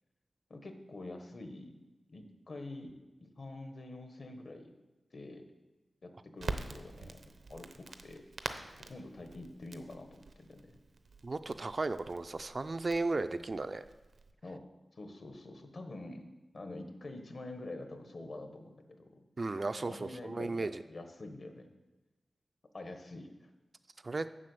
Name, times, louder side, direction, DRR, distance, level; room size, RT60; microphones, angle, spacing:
voice 1, 0.5-1.8 2.1-4.7 5.1-5.5 6.0-7.2 7.5-8.2 8.9-10.8 14.4-14.6 15.0-16.3 16.5-19.2 19.8-21.7 22.7-23.5, left 2 dB, 50° left, 6 dB, 1.0 m, -46 dB
Crackle, 6.4-14.3, right 3 dB, 70° right, 0.6 m, -46 dB
voice 2, 11.2-13.9 19.4-20.8 24.0-24.3, right 3 dB, 40° right, 11 dB, 0.3 m, -35 dB
7.5 x 5.9 x 7.7 m, 1.1 s
wide cardioid pair, 125°, 0 cm